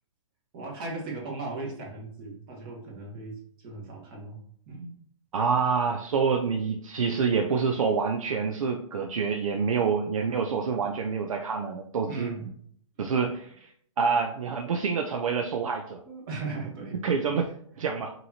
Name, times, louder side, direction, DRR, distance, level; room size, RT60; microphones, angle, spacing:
voice 1, 0.5-4.9 12.1-12.6 16.0-17.2, right 3 dB, 40° right, -2 dB, 1.6 m, -38 dB
voice 2, 5.3-12.3 13.0-13.7 14.0-16.0 17.0-17.5 17.8-18.1, right 5 dB, 80° right, 4 dB, 0.5 m, -27 dB
5.2 x 2.9 x 2.8 m, 0.63 s
hypercardioid pair, 135°, 17 cm